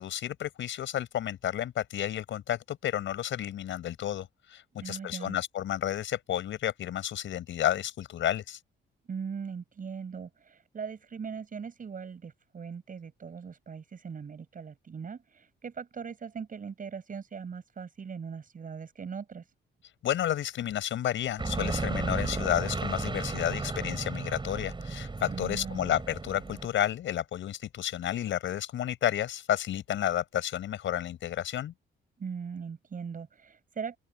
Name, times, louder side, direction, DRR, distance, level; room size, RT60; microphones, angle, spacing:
voice 1, 0.0-8.6 20.0-31.7, left 11 dB, 75° left, 6.5 m, -31 dB
voice 2, 4.8-5.4 9.1-19.5 25.3-25.9 32.2-34.0, right 6 dB, 45° right, 6.7 m, -40 dB
sound 1, 21.4-26.7, right 3 dB, 25° right, 6.1 m, -34 dB
open air
cardioid pair, 90°, 20 cm